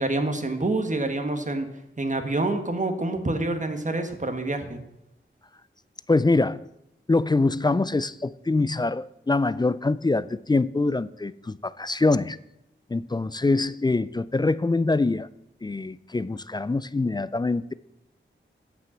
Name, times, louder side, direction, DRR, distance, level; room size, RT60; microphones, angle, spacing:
voice 1, 0.0-1.7 2.0-4.8, right 2 dB, 35° right, 6 dB, 1.3 m, -27 dB
voice 2, 6.1-6.6 7.1-12.4 12.9-15.3 15.6-17.7, left 3 dB, 20° left, 16 dB, 0.3 m, -24 dB
8.5 x 7.6 x 7.2 m, 0.84 s
wide cardioid pair, 85°, 21 cm